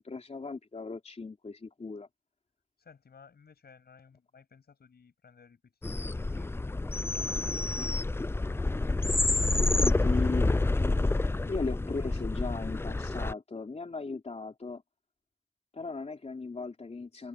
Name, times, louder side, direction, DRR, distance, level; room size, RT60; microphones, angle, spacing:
voice 1, 0.0-2.1 9.7-14.8 15.7-17.3, left 3 dB, 40° left, 3.6 m, -37 dB
voice 2, 2.8-8.1, left 6 dB, 75° left, 7.8 m, -58 dB
sound 1, 5.8-13.3, left 2 dB, 15° left, 0.4 m, -28 dB
wide cardioid pair, 80°, 16 cm